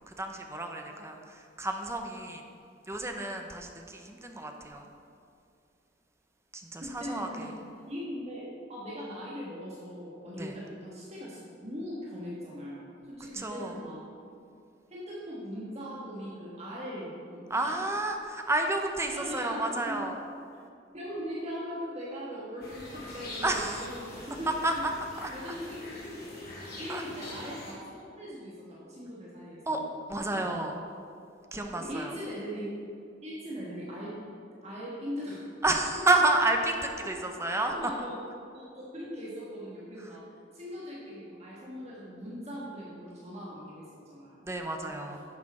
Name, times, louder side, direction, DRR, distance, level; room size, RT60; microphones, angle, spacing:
voice 1, 0.1-2.4 2.9-4.9 6.5-7.5 10.4-10.5 13.3-13.8 17.5-20.2 23.4-23.9 24.6-24.7 25.2-25.3 26.9-27.0 29.7-29.8 30.1-30.8 31.5-32.1 35.6-36.8 37.1-37.7 44.4-45.2, right 2 dB, 15° right, 3 dB, 0.7 m, -30 dB
voice 2, 6.8-7.5 7.9-14.1 14.9-17.8 19.1-20.1 20.9-24.5 25.3-26.3 26.7-29.9 30.3-30.5 31.8-32.7 33.2-34.3 34.6-35.4 35.9-36.1 37.0-37.1 37.7-38.2 38.5-40.2 40.5-44.5 44.9-45.1, equal, 35° right, -6 dB, 1.4 m, -40 dB
sound 1, 22.6-27.7, left 1 dB, 55° left, 2.5 m, -44 dB
11.0 x 6.7 x 4.2 m, 2.5 s
head